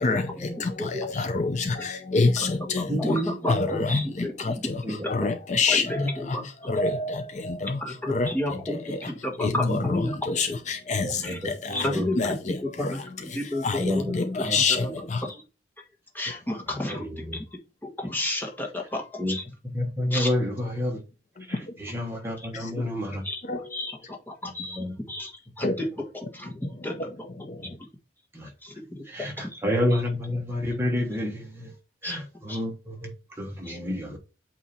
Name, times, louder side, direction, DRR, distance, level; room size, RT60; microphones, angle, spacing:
voice 1, 0.0-9.1 9.4-15.3 16.5-16.6 21.4-21.6 22.5-22.8 23.4-23.7 25.6-25.7 26.6-27.8, left 3 dB, 40° left, 0.6 m, -28 dB
voice 2, 0.8-1.2 1.8-1.9 2.4-2.5 2.8-5.3 5.7-6.7 7.8-10.2 11.2-11.4 11.7-12.4 12.6-14.0 14.8-15.4 16.1-17.1 17.3-19.4 20.1-20.3 21.6-21.7 22.4-22.5 23.2-23.4 23.7-25.9 26.1-27.1 27.8-27.9 28.6-29.0 29.4-29.5 29.9-30.0 32.0-32.2 32.5-32.6 33.6-33.8, left 1 dB, 10° left, 1.3 m, -32 dB
voice 3, 2.9-3.3 4.8-5.0 9.6-9.8 11.0-11.4 11.7-12.1 13.8-14.1 14.4-14.6 16.9-17.0 19.2-19.3 19.7-21.0 21.5-23.2 24.8-24.9 28.3-28.5 29.1-29.3 29.6-31.7 32.0-33.1 33.4-34.2, left 1 dB, 15° right, 1.4 m, -28 dB
8.2 x 2.9 x 4.3 m
head